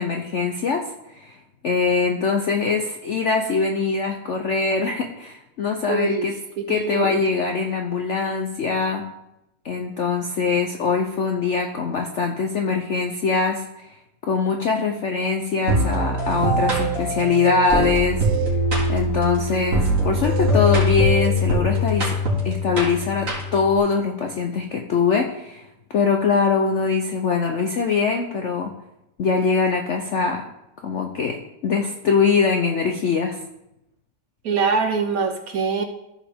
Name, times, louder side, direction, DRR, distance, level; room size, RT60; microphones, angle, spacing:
voice 1, 0.0-1.4 1.6-6.3 6.7-9.0 9.6-14.0 14.3-18.2 18.9-22.2 22.4-25.7 25.9-28.7 29.2-30.5 30.8-33.4, left 5 dB, 65° left, 3 dB, 0.7 m, -22 dB
voice 2, 5.9-6.3 6.7-7.2 34.4-35.8, right 4 dB, 65° right, 6 dB, 1.0 m, -23 dB
sound 1, 15.7-23.8, equal, 45° right, 2.7 m, -22 dB
14.0 x 4.9 x 3.5 m, 0.86 s
omnidirectional pair, 2.0 m